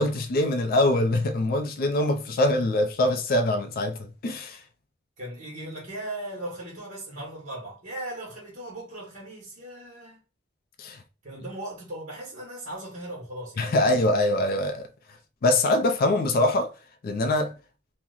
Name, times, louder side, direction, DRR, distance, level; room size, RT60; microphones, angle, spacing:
voice 1, 0.0-4.6 10.8-11.0 13.6-14.9 15.4-16.7 17.0-17.5, left 1 dB, 45° left, 0.4 m, -23 dB
voice 2, 5.2-10.2 11.2-13.7, right 1 dB, 40° right, 1.1 m, -38 dB
2.9 x 2.1 x 3.7 m
head